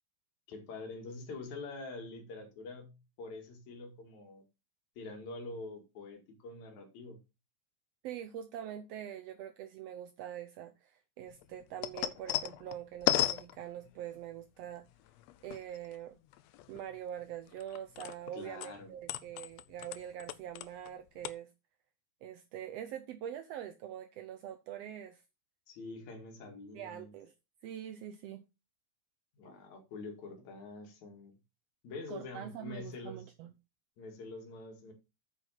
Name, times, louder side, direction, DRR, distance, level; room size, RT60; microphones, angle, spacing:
voice 1, 0.5-4.4 5.0-7.2 18.3-18.9 25.7-27.1 29.4-31.3 31.8-33.2 34.0-34.9, left 3 dB, 65° left, 3.3 m, -45 dB
voice 2, 8.0-14.9 15.4-16.2 16.7-21.5 22.2-25.2 26.7-27.3 27.6-28.4 32.1-33.5, right 10 dB, 80° right, 1.4 m, -44 dB
sound 1, 11.3-14.2 14.9-16.0 16.3-18.3 18.6-20.9 21.2-21.3, left 14 dB, 85° left, 1.5 m, -35 dB
9.2 x 5.1 x 5.6 m
omnidirectional pair, 3.7 m